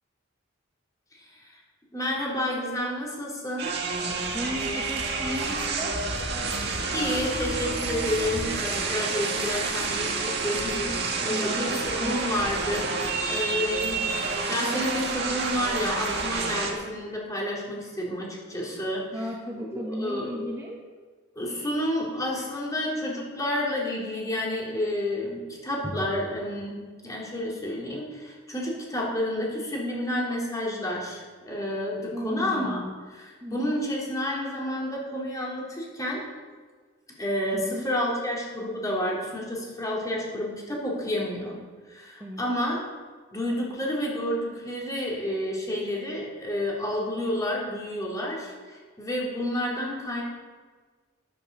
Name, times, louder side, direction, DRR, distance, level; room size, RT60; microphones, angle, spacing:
voice 1, 1.1-1.6 1.9-3.7 6.5-13.0 13.3-19.2 19.6-20.3 21.4-32.8 33.1-36.2 37.2-41.6 41.9-42.8 43.3-50.2, left 1 dB, 15° left, -4 dB, 3.6 m, -30 dB
sound 1, 3.6-16.7, right 3 dB, 55° right, 2.1 m, -29 dB
voice 2, 4.3-6.1 10.8-12.2 14.6-14.9 19.1-20.9 25.8-26.0 32.1-33.0 33.4-33.8 37.5-37.9 42.2-42.4, equal, 15° right, -2 dB, 1.1 m, -35 dB
11.0 x 9.9 x 7.1 m, 1.4 s
head